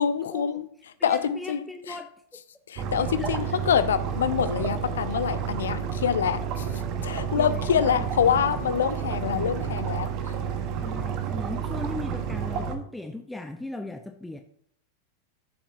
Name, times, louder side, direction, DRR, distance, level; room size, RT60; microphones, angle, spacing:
voice 1, 0.0-2.0 2.7-6.7 7.0-10.3, left 8 dB, 65° left, 13 dB, 0.7 m, -26 dB
voice 2, 1.0-2.1 3.2-3.6 7.4-8.1 9.3-9.8 10.8-14.4, left 2 dB, 5° left, 5 dB, 0.6 m, -38 dB
sound 1, 2.8-12.8, right 7 dB, 40° right, 1.1 m, -30 dB
14.0 x 7.1 x 2.7 m, 0.66 s
figure-of-eight pair, 90°, 0 cm